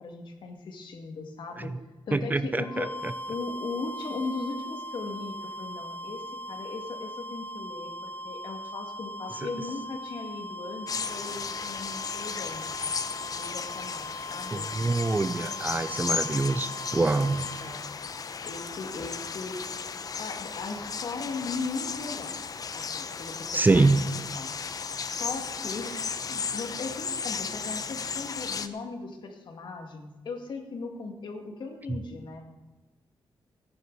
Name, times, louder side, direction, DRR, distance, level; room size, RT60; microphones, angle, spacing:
voice 1, 0.0-1.7 2.1-2.9 3.3-12.7 13.3-14.7 17.6-17.9 18.4-22.4 22.7-24.5 25.0-26.0 26.3-32.5, left 4 dB, 65° left, 3 dB, 2.2 m, -38 dB
voice 2, 2.1-2.9 14.5-17.5 23.5-24.0, right 3 dB, 20° right, 13 dB, 0.5 m, -25 dB
sound 1, 2.6-17.9, left 1 dB, 20° left, 1.0 m, -40 dB
sound 2, 10.9-28.7, left 5 dB, 45° left, 0.7 m, -35 dB
16.5 x 11.0 x 4.1 m, 1.1 s
cardioid pair, 110°, 8 cm